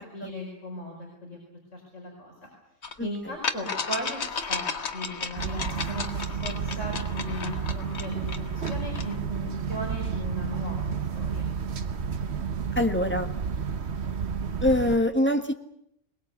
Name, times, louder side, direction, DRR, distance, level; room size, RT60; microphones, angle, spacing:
voice 1, 0.0-1.4 1.7-2.5 3.0-4.7 4.9-11.5, equal, 85° left, -1 dB, 5.3 m, -37 dB
sound 1, 2.8-2.9 3.4-9.2, left 5 dB, 65° left, 1.6 m, -34 dB
voice 2, 3.0-3.3 12.7-13.3 14.6-15.5, left 1 dB, 10° left, 6 dB, 1.6 m, -25 dB
sound 2, 5.4-15.0, right 6 dB, 60° right, 1.4 m, -31 dB
22.0 x 20.5 x 8.3 m, 0.79 s
omnidirectional pair, 1.2 m